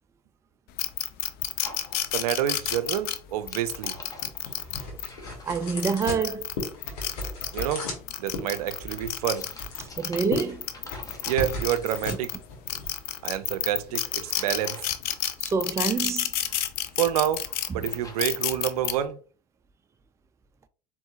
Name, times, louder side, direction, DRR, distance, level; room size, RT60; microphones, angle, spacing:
sound 1, 0.8-5.1 5.6-7.7 8.1-12.4 12.7-18.9, left 12 dB, 50° left, 0.6 m, -30 dB
sound 2, 1.6-2.5 2.8-3.1 3.4-6.3 8.1-12.1 13.5-13.7 14.2-15.4 15.7-16.7 17.3-19.0, left 1 dB, 15° left, 1.1 m, -49 dB
voice 1, 2.1-4.0 7.5-7.9 8.2-9.5 11.3-12.3 13.2-14.8 17.0-17.5 17.7-19.2, right 11 dB, 70° right, 0.5 m, -28 dB
sound 3, 3.7-13.8, left 2 dB, 70° left, 1.7 m, -37 dB
voice 2, 5.4-6.5 10.0-10.6 15.4-16.3, right 5 dB, 15° right, 0.4 m, -27 dB
4.3 x 3.6 x 2.5 m
hypercardioid pair, 80°, 20 cm